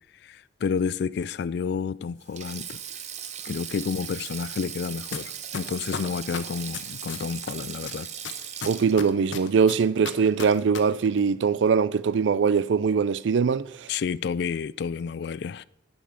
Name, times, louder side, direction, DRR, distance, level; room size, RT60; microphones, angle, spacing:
voice 1, 0.2-2.8 3.4-8.1 13.9-15.6, left 6 dB, 60° left, 0.3 m, -30 dB
Sink (filling or washing), 2.2-10.7 11.0-11.2 12.4-12.6, right 9 dB, 40° right, 0.7 m, -39 dB
sound 1, 5.1-5.2 5.5-7.5 7.9-10.8 11.0-11.1, left 6 dB, 90° left, 1.0 m, -33 dB
voice 2, 8.6-13.9, right 6 dB, 75° right, 0.4 m, -22 dB
10.0 x 5.3 x 7.4 m
head